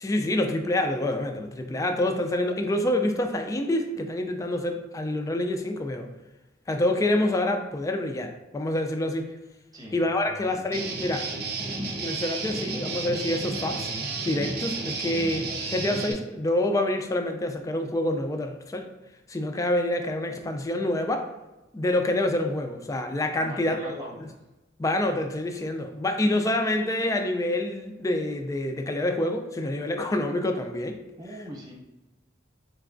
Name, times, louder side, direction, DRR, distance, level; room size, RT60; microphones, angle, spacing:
voice 1, 0.0-6.1 6.7-9.3 9.9-11.3 12.0-13.9 14.2-18.9 19.3-21.2 21.7-24.3 24.8-31.0, left 1 dB, 20° left, 5 dB, 0.3 m, -27 dB
voice 2, 10.2-10.7 23.3-24.3 31.2-31.7, equal, 20° right, -3 dB, 0.9 m, -42 dB
Guitar, 10.7-16.1, right 3 dB, 55° right, 0.6 m, -32 dB
3.9 x 3.3 x 2.5 m, 1.1 s
head